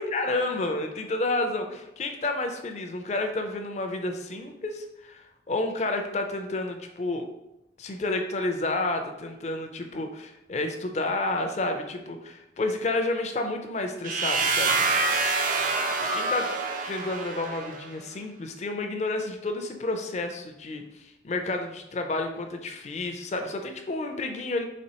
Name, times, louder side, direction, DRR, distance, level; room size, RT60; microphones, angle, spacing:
voice 1, 0.0-7.3 7.8-14.9 15.8-16.5 16.9-24.7, left 2 dB, 35° left, 5 dB, 0.4 m, -30 dB
sound 1, 14.0-17.9, right 3 dB, 45° right, 0.3 m, -26 dB
4.2 x 3.3 x 2.8 m, 0.90 s
head